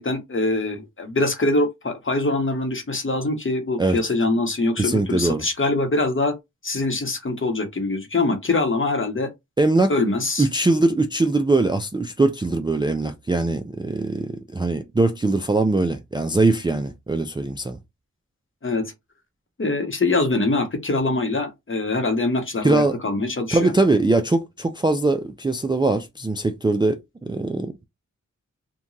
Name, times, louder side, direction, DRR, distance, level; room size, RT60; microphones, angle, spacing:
voice 1, 0.0-6.4 6.6-9.3 9.9-10.5 18.6-18.9 19.6-23.7, left 2 dB, 40° left, 0.9 m, -23 dB
voice 2, 4.8-5.4 9.6-9.9 10.4-17.8 22.6-23.0 23.5-27.9, right 2 dB, 15° right, 0.3 m, -21 dB
2.9 x 2.2 x 2.6 m
cardioid pair, 50°, 32 cm